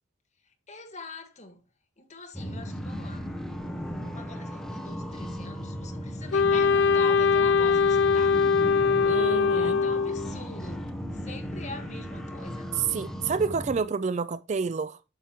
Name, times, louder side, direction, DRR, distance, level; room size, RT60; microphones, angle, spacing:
voice 1, 0.7-1.6 2.0-3.4 4.0-8.5 9.5-10.9 11.1-12.8, left 3 dB, 35° left, 1.6 m, -43 dB
sound 1, 2.3-13.8, equal, 5° left, 1.0 m, -36 dB
Wind instrument woodwind instrument, 6.3-10.3, left 5 dB, 65° left, 0.5 m, -22 dB
voice 2, 9.1-9.8 12.8-15.0, right 5 dB, 35° right, 0.4 m, -29 dB
9.9 x 7.0 x 3.1 m
head